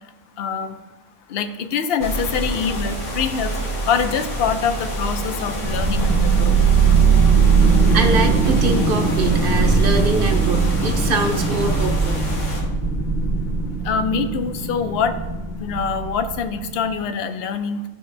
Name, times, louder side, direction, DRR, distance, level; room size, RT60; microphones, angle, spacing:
voice 1, 0.4-0.8 1.3-3.5 3.9-6.5 13.8-15.1 15.6-17.8, left 6 dB, 60° left, 9 dB, 0.6 m, -24 dB
sound 1, 2.0-12.6, right 1 dB, 90° left, 2.0 m, -28 dB
sound 2, 5.6-16.9, right 4 dB, 5° right, 2.4 m, -20 dB
voice 2, 7.9-12.2, right 3 dB, 55° right, 5 dB, 0.7 m, -24 dB
11.5 x 4.7 x 2.6 m, 1.2 s
omnidirectional pair, 1.4 m